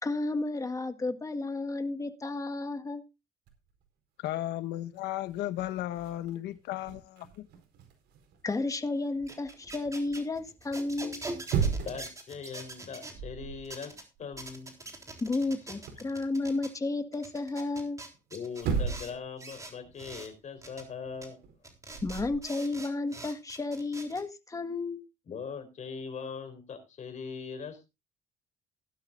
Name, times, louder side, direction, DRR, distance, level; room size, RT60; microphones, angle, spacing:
voice 1, 0.0-3.0 8.4-11.2 15.2-18.0 22.0-25.0, left 3 dB, 20° left, 1.6 m, -32 dB
sound 1, 3.5-3.8 4.4-4.5 4.8-9.1 11.2-12.2 12.6-12.8 13.1-13.7 13.9-16.1 18.1-18.2 18.5-19.3 19.5-22.4, right 6 dB, 80° right, 4.5 m, -36 dB
voice 2, 4.2-7.5, left 14 dB, 80° left, 1.2 m, -35 dB
sound 2, 9.2-13.2 13.7-14.0 14.4-16.7 17.1-19.1 19.4-20.3 20.6-20.8 21.2-21.3 21.6-24.2, right 2 dB, 20° right, 3.7 m, -44 dB
voice 3, 11.9-14.7 18.3-21.4 25.3-27.9, left 6 dB, 45° left, 4.0 m, -41 dB
16.5 x 12.0 x 2.5 m
cardioid pair, 110°, 17 cm